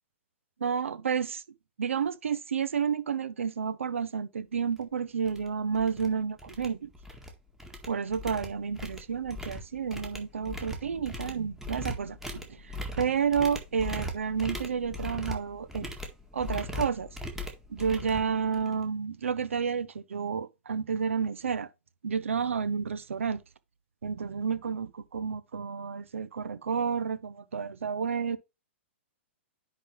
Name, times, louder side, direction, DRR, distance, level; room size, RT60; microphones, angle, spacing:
voice 1, 0.6-1.4 1.8-6.9 7.9-15.9 16.3-17.1 17.7-21.7 22.0-23.4 24.0-28.4, right 6 dB, 80° right, 0.8 m, -30 dB
sound 1, 4.7-4.8 5.2-5.5 5.7-6.1 6.4-7.3 7.6-18.8, equal, 5° right, 1.7 m, -39 dB
10.0 x 3.9 x 3.2 m
hypercardioid pair, 120°, 7 cm